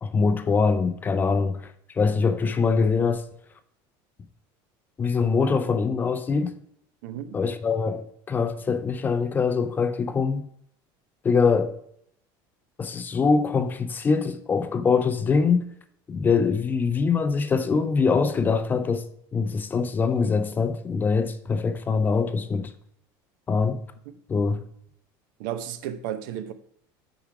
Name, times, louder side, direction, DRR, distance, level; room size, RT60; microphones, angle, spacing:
voice 1, 0.0-1.6 2.0-3.2 5.0-6.6 7.3-10.5 11.2-11.8 12.8-15.7 16.1-22.7 23.5-23.8 24.3-24.6, left 5 dB, 20° left, 0.4 m, -23 dB
voice 2, 7.0-7.4 25.4-26.5, right 10 dB, 80° right, 0.7 m, -33 dB
7.2 x 4.8 x 4.7 m
cardioid pair, 160°, 10 cm